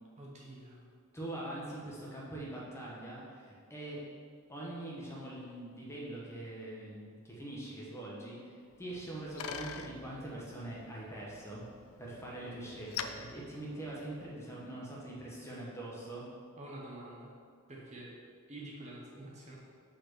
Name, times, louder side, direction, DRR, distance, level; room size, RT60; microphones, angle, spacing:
voice 1, 0.2-0.9 16.6-17.3 17.7-18.1 18.5-19.6, right 1 dB, 30° right, -3 dB, 1.0 m, -47 dB
voice 2, 1.1-4.0 4.5-11.6 12.0-16.2, right 1 dB, 10° left, -5 dB, 1.0 m, -43 dB
Bicycle, 8.7-14.4, left 7 dB, 70° left, 0.4 m, -46 dB
5.5 x 4.4 x 6.2 m, 2.1 s
head